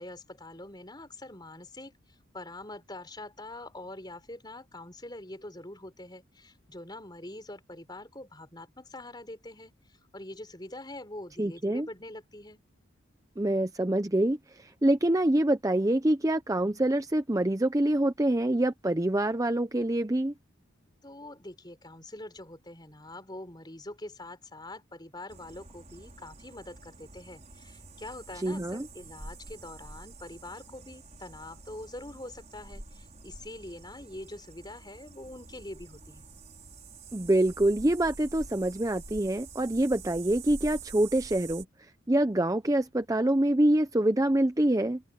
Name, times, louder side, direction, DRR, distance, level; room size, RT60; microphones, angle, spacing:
voice 1, 0.0-1.9 2.3-9.7 10.1-12.6 21.0-36.2, left 1 dB, 20° left, 4.9 m, -44 dB
voice 2, 11.4-11.9 13.4-20.3 28.4-28.9 37.1-41.7 42.1-45.0, right 1 dB, 15° right, 0.6 m, -26 dB
sound 1, 25.3-41.6, right 3 dB, 35° right, 5.7 m, -47 dB
open air
head